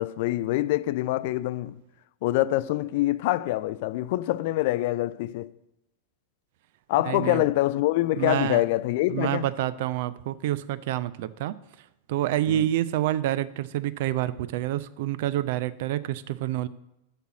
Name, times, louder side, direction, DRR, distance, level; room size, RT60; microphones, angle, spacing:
voice 1, 0.0-1.8 2.2-5.5 6.9-9.5 12.5-12.6, left 16 dB, 50° left, 0.3 m, -25 dB
voice 2, 7.1-7.4 8.2-8.6 9.1-11.5 12.1-16.7, right 13 dB, 50° right, 0.4 m, -28 dB
6.6 x 6.0 x 7.3 m
figure-of-eight pair, 90°, 0 cm